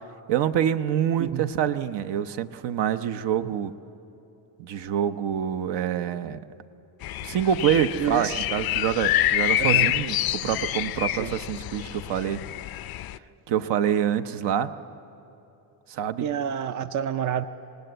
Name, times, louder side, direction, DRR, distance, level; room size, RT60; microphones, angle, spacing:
voice 1, 0.3-3.7 4.6-6.4 7.2-12.4 13.5-14.7 15.9-16.3, right 9 dB, 65° right, 10 dB, 0.9 m, -26 dB
sound 1, 7.0-13.2, left 14 dB, 55° left, 0.5 m, -27 dB
voice 2, 8.0-8.5 9.6-10.0 11.1-11.3 16.2-17.5, right 9 dB, 40° right, 11 dB, 0.6 m, -28 dB
27.5 x 18.5 x 8.0 m, 3.0 s
cardioid pair, 125°, 44 cm